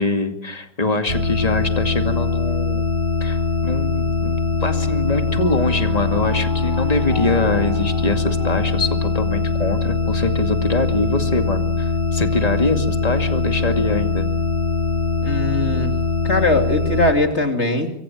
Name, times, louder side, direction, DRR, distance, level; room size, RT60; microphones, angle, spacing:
voice 1, 0.0-2.9 3.2-14.3, left 2 dB, 25° left, 6 dB, 2.3 m, -23 dB
sound 1, 1.1-17.1, left 3 dB, 45° right, 4.5 m, -22 dB
sound 2, 4.6-9.6, left 1 dB, 80° left, 6.5 m, -36 dB
voice 2, 15.2-15.9 16.2-17.9, left 2 dB, 40° left, 5 dB, 3.1 m, -20 dB
26.5 x 23.5 x 7.3 m, 0.74 s
omnidirectional pair, 1.8 m